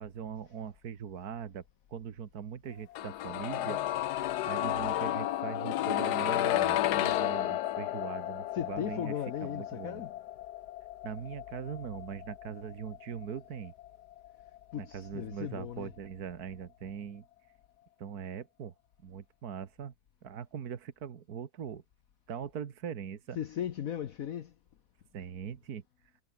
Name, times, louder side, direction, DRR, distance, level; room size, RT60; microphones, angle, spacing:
voice 1, 0.0-1.6 1.9-3.8 4.5-10.0 11.0-13.7 14.8-17.3 18.0-18.7 19.0-19.9 20.2-21.8 22.3-23.4 25.1-25.8, right 8 dB, 70° right, 1.9 m, -41 dB
sound 1, 2.9-14.8 15.1-15.2, left 13 dB, 90° left, 1.3 m, -33 dB
voice 2, 8.6-10.1 14.7-15.9 23.4-24.5, left 10 dB, 65° left, 1.3 m, -37 dB
omnidirectional pair, 1.7 m